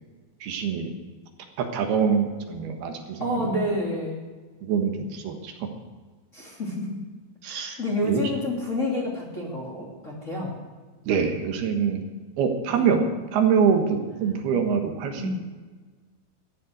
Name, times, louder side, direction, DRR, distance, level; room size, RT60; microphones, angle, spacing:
voice 1, 0.4-0.9 1.6-3.5 4.6-5.7 7.4-8.2 11.1-12.0 12.4-13.0 13.3-15.2, right 6 dB, 80° right, 4 dB, 3.4 m, -24 dB
voice 2, 3.2-4.2 6.3-7.0 7.4-10.5 12.7-12.9 15.2-15.3, left 1 dB, 20° left, -4 dB, 2.8 m, -29 dB
14.5 x 11.0 x 6.3 m, 1.4 s
omnidirectional pair, 4.6 m